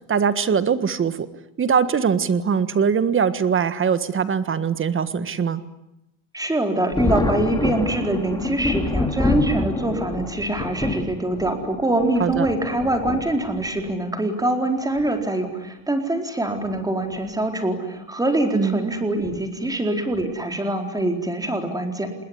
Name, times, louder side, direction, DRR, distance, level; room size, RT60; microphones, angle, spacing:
voice 1, 0.1-1.3 1.6-5.6 12.2-12.5 18.5-18.8, right 6 dB, 30° right, 13 dB, 1.5 m, -21 dB
voice 2, 6.3-22.2, right 1 dB, 10° right, 4 dB, 4.3 m, -24 dB
Thunder, 6.9-14.0 15.0-15.1 16.5-16.8 17.2-17.3 19.2-19.4 20.1-20.5, left 2 dB, 10° left, 2.3 m, -27 dB
27.5 x 21.0 x 9.9 m, 0.87 s
cardioid pair, 135°, 41 cm